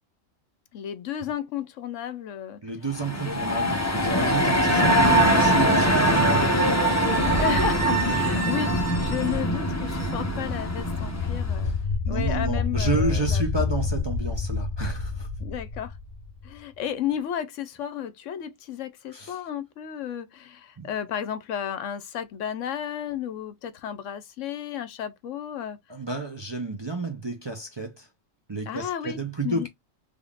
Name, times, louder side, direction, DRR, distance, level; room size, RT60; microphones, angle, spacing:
voice 1, 0.7-2.6 3.1-3.4 4.1-4.3 7.4-11.7 12.1-13.4 15.4-15.9 16.4-25.8 28.7-29.7, left 9 dB, 70° left, 1.0 m, -33 dB
voice 2, 2.6-6.7 9.5-9.6 11.6-11.7 12.0-15.3 19.1-19.4 20.8-20.9 25.9-28.1 28.5-29.7, right 3 dB, 30° right, 0.6 m, -31 dB
sound 1, 2.9-11.6, right 1 dB, 15° left, 0.7 m, -22 dB
sound 2, 9.8-16.6, left 4 dB, 50° left, 0.5 m, -28 dB
3.6 x 3.4 x 2.3 m
omnidirectional pair, 1.4 m